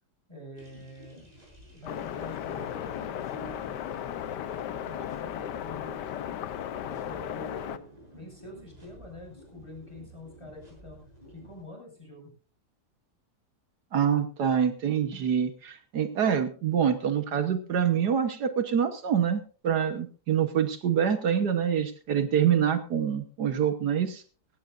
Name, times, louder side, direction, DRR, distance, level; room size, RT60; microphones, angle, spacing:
voice 1, 0.3-1.3 1.7-3.8 4.5-6.4 6.8-11.0 11.3-12.3, left 1 dB, 15° left, 1 dB, 6.3 m, -46 dB
sound 1, 0.5-11.6, equal, 25° right, 7.1 m, -52 dB
sound 2, 1.9-7.8, left 10 dB, 85° left, 1.4 m, -35 dB
voice 2, 13.9-24.2, right 8 dB, 75° right, 9 dB, 1.7 m, -26 dB
18.5 x 16.5 x 2.6 m, 0.38 s
omnidirectional pair, 1.8 m